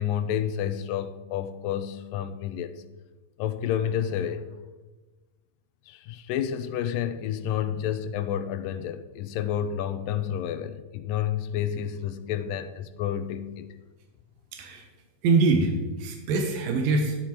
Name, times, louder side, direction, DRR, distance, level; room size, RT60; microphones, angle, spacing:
voice 1, 0.0-2.8 3.4-4.5 5.9-13.7, left 9 dB, 80° left, 2.3 m, -30 dB
voice 2, 14.5-14.9 15.2-15.7 16.0-17.2, right 3 dB, 85° right, 2.9 m, -23 dB
13.0 x 10.5 x 4.4 m
omnidirectional pair, 4.0 m